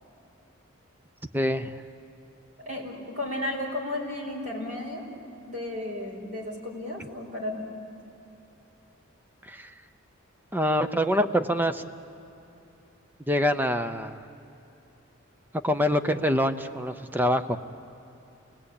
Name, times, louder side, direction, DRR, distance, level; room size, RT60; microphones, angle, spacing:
voice 1, 1.3-1.8 7.0-7.1 9.4-9.7 10.5-11.8 13.3-14.3 15.6-17.6, equal, 10° right, 10 dB, 0.7 m, -25 dB
voice 2, 2.6-5.0 5.4-7.7, left 1 dB, 40° right, -1 dB, 4.9 m, -33 dB
28.5 x 20.0 x 8.6 m, 2.9 s
head